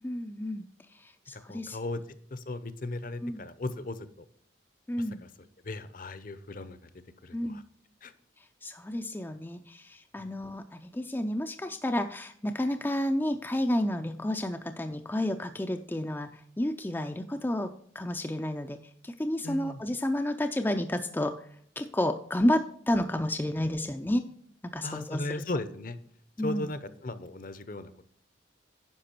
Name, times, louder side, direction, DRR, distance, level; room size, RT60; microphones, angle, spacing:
voice 1, 0.0-1.8 3.2-3.4 4.9-5.2 7.3-7.6 8.4-21.5 21.8-24.3 24.6-25.4 26.4-26.7, left 1 dB, 10° left, 6 dB, 0.4 m, -31 dB
voice 2, 1.5-2.0 2.3-4.1 5.6-6.8 7.2-7.6 8.0-8.1 19.4-19.8 24.8-26.0 26.4-28.0, left 2 dB, 45° left, 13 dB, 0.7 m, -36 dB
10.0 x 5.8 x 4.4 m, 0.64 s
head